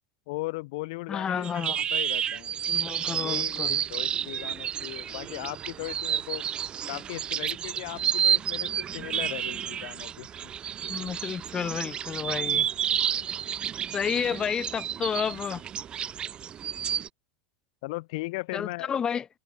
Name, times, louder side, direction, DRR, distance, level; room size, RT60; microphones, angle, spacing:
voice 1, 0.3-2.5 3.1-6.4 6.9-10.5 17.8-18.9, left 23 dB, 65° left, 2.9 m, -37 dB
voice 2, 1.1-1.8 2.7-3.8 10.9-12.7 13.9-15.6 18.5-19.3, left 7 dB, 25° left, 1.1 m, -31 dB
sound 1, 1.4-17.1, right 9 dB, 30° right, 3.6 m, -30 dB
supercardioid pair, 125°, 3 cm